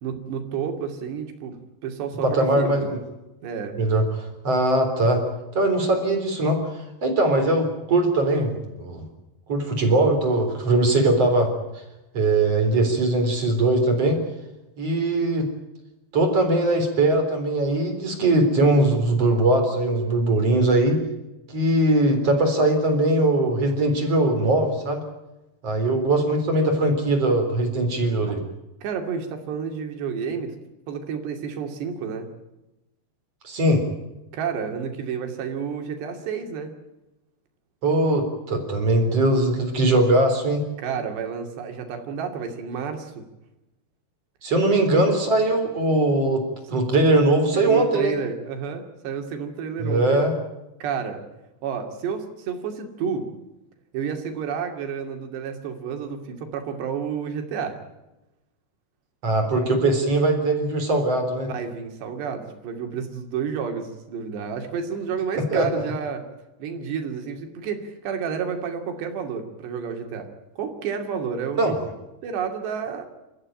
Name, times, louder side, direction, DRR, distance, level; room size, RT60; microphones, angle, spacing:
voice 1, 0.0-2.9 3.4-3.8 28.2-28.3 28.8-30.5 30.9-32.3 34.3-36.7 40.8-43.2 47.5-50.2 50.8-51.2 51.6-53.3 53.9-57.8 61.5-66.3 66.6-70.3 70.6-71.9 72.2-73.1, right 6 dB, 90° right, 5 dB, 4.8 m, -30 dB
voice 2, 2.2-3.0 3.8-4.0 4.4-5.2 5.5-9.0 9.5-11.5 12.1-14.2 14.8-15.5 16.1-21.0 21.5-25.0 25.6-28.4 33.4-33.8 37.8-40.6 44.4-46.4 46.7-48.1 49.8-50.3 59.2-61.5 65.3-65.9 71.6-71.8, right 2 dB, 40° right, 5 dB, 4.5 m, -21 dB
28.0 x 14.5 x 8.9 m, 0.98 s
omnidirectional pair, 4.8 m